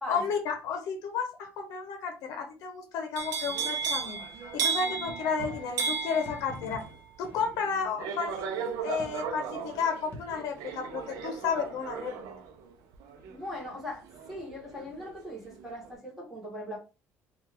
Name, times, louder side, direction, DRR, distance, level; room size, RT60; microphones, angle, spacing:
voice 1, 0.1-4.2 4.5-6.8 7.2-8.5 8.8-12.1, left 5 dB, 70° left, 0.7 m, -32 dB
sound 1, 3.2-15.1 15.5-15.9, right 5 dB, 80° right, 0.6 m, -35 dB
sound 2, 5.0-5.7 6.2-7.5 8.0-8.1 9.0-9.3 10.1-10.5, left 2 dB, 30° left, 1.2 m, -44 dB
voice 2, 13.3-16.8, left 1 dB, 5° right, 1.3 m, -40 dB
2.8 x 2.4 x 3.3 m
cardioid pair, 135°, 6 cm